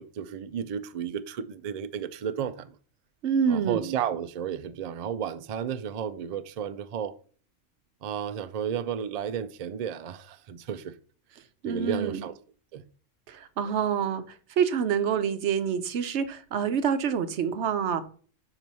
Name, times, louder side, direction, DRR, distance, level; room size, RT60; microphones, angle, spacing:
voice 1, 0.0-2.8 3.5-7.1 8.0-10.9 11.6-12.3 12.7-12.8, right 8 dB, 90° right, 0.3 m, -33 dB
voice 2, 3.2-3.9 11.6-12.2 13.3-14.2 14.6-18.0, right 7 dB, 65° right, 1.0 m, -27 dB
4.9 x 4.5 x 5.3 m
omnidirectional pair, 1.3 m